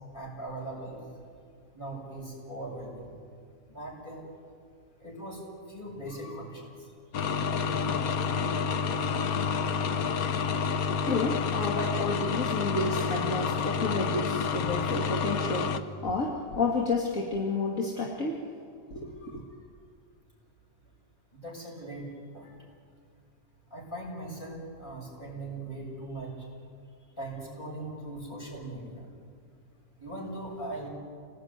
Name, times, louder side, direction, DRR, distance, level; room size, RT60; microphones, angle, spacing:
voice 1, 0.1-1.0 1.7-3.1 3.7-4.2 5.0-5.4 5.7-6.7 10.8-10.9 19.2-19.4 21.3-22.0 22.3-22.6 23.7-26.3 27.2-29.0 30.0-30.9, right 1 dB, 35° left, -2 dB, 7.4 m, -40 dB
sound 1, 7.1-15.8, left 6 dB, 80° left, 1.5 m, -29 dB
voice 2, 10.5-18.5 18.9-19.4, left 3 dB, 60° left, 0 dB, 2.3 m, -31 dB
27.5 x 18.5 x 9.6 m, 2.3 s
omnidirectional pair, 1.6 m